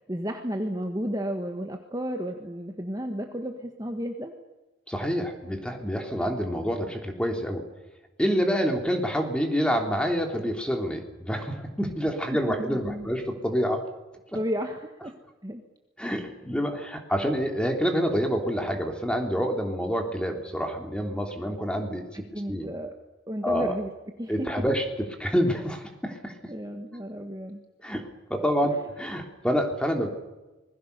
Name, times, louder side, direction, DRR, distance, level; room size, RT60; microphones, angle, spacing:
voice 1, 0.1-4.3 12.6-13.1 14.3-15.1 15.4-15.6 22.1-22.9 23.3-23.9 24.2-24.6 26.5-27.6 28.6-28.8, equal, 20° right, 4 dB, 1.6 m, -33 dB
voice 2, 4.9-7.6 8.2-13.9 16.0-22.7 23.4-23.7 24.3-26.5 27.8-28.0 28.3-30.1, equal, 5° left, 3 dB, 3.1 m, -27 dB
26.5 x 21.0 x 6.8 m, 1.1 s
head